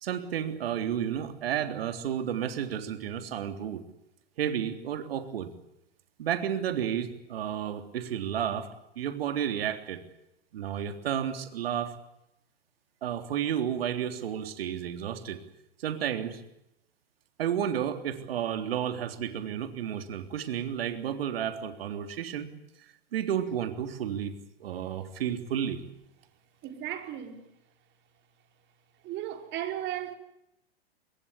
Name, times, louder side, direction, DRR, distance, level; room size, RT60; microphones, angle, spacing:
voice 1, 0.0-3.8 4.4-5.5 6.2-8.7 9.0-10.0 10.5-12.0 13.0-15.4 15.8-16.4 17.4-22.5 23.1-24.3 24.6-25.8, right 9 dB, 70° right, 3.5 m, -31 dB
voice 2, 26.6-27.4 29.0-30.1, right 12 dB, 35° right, 5.0 m, -35 dB
25.0 x 21.5 x 8.4 m
hypercardioid pair, 110°, 31 cm